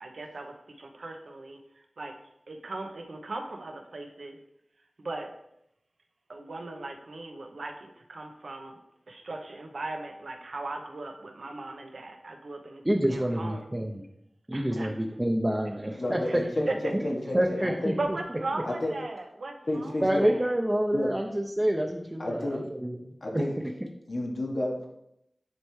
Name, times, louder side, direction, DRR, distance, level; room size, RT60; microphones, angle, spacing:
voice 1, 0.0-1.6 2.0-2.1 2.5-4.4 5.0-5.3 6.3-8.8 9.1-12.8 13.1-13.6 14.5-15.0 16.3-16.4 16.7-16.8 18.0-19.9 20.2-20.4, right 2 dB, 80° right, 4 dB, 0.7 m, -38 dB
voice 2, 12.8-14.1 14.5-16.4 16.9-17.0 17.3-17.9 20.0-23.4, right 1 dB, 20° right, 2 dB, 0.5 m, -28 dB
voice 3, 16.0-17.9 18.6-18.9 19.7-20.3 20.9-21.1 22.2-22.7 23.2-23.6 24.1-24.9, left 1 dB, 65° left, 0 dB, 1.1 m, -31 dB
9.4 x 3.3 x 3.1 m, 0.79 s
wide cardioid pair, 70°, 0 cm